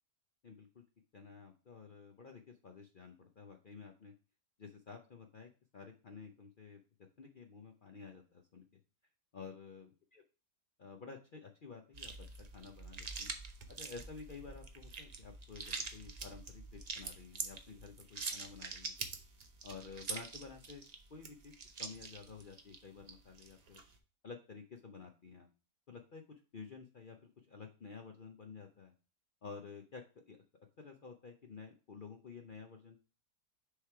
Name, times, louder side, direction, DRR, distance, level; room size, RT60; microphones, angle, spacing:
voice 1, 0.4-0.8 1.1-4.1 4.6-6.8 7.2-8.6 9.3-10.2 10.8-13.4 13.7-19.1 19.6-20.8 21.1-21.5 21.8-23.8 24.2-25.5 25.9-28.9 29.4-30.4 30.8-33.0, left 5 dB, 70° left, 4 dB, 0.4 m, -51 dB
sound 1, 11.9-24.0, right 4 dB, 60° right, 0.4 m, -45 dB
6.6 x 3.2 x 4.5 m, 0.35 s
omnidirectional pair, 1.8 m